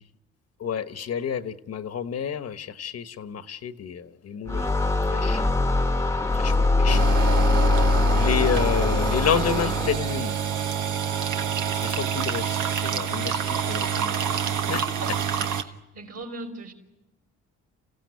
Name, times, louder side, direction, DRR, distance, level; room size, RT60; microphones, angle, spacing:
voice 1, 0.6-4.7 5.1-5.4 6.3-7.1 8.1-10.4 11.7-14.2 14.7-14.8, left 7 dB, 55° left, 10 dB, 1.3 m, -30 dB
sound 1, 4.5-10.2, left 3 dB, 10° left, 1.1 m, -22 dB
sound 2, 6.9-15.6, right 8 dB, 85° right, 1.5 m, -27 dB
voice 2, 14.5-15.1 15.5-16.7, right 2 dB, 55° right, 4 dB, 5.5 m, -40 dB
30.0 x 16.0 x 9.6 m, 1.0 s
cardioid pair, 90°, 30 cm